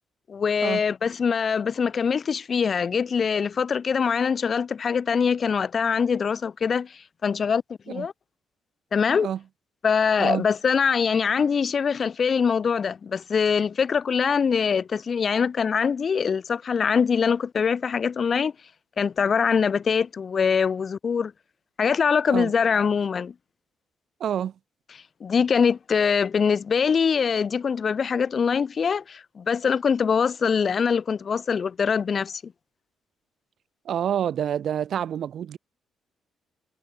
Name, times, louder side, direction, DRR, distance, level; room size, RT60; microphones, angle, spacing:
voice 1, 0.3-8.1 8.9-9.3 9.8-18.5 19.0-21.3 21.8-23.3 25.2-32.5, left 6 dB, 50° left, 1.0 m, -23 dB
voice 2, 24.2-24.5 33.8-35.6, right 9 dB, 65° right, 3.2 m, -27 dB
supercardioid pair, 70°, 0 cm